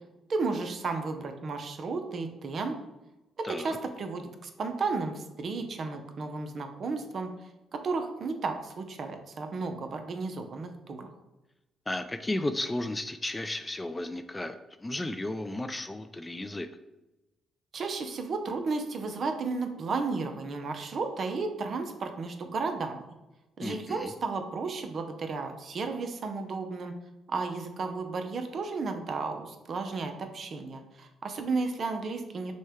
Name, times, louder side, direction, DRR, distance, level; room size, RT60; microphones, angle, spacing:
voice 1, 0.3-2.7 3.4-7.3 7.7-11.1 17.7-23.0 23.6-26.9 27.3-32.5, right 4 dB, 50° right, 6 dB, 0.6 m, -33 dB
voice 2, 11.9-16.7 23.6-24.1, left 1 dB, 15° left, 9 dB, 0.3 m, -34 dB
6.2 x 2.2 x 3.5 m, 1.0 s
cardioid pair, 90°, 0 cm